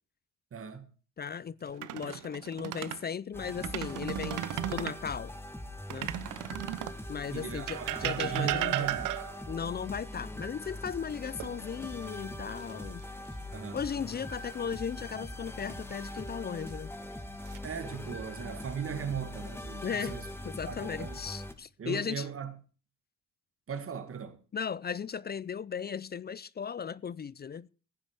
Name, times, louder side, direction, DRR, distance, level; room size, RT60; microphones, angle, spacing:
voice 1, 0.5-0.9 2.1-2.2 7.3-9.2 13.5-13.8 17.6-20.3 20.7-21.2 21.8-22.5 23.7-24.4, right 7 dB, 45° right, 2.2 m, -38 dB
voice 2, 1.2-4.4 4.7-5.3 5.9-6.1 7.1-8.9 9.5-13.0 13.7-16.9 19.8-22.3 24.5-27.7, left 7 dB, 35° left, 0.5 m, -36 dB
sound 1, 1.7-3.0 3.5-5.0 5.9-7.0 7.7-9.5 11.4-12.1 12.5-12.7 15.6-16.2 16.9-17.6, right 14 dB, 85° right, 0.9 m, -35 dB
sound 2, 3.3-21.5, left 1 dB, 10° left, 2.3 m, -42 dB
15.5 x 9.8 x 4.8 m
cardioid pair, 90°, 30 cm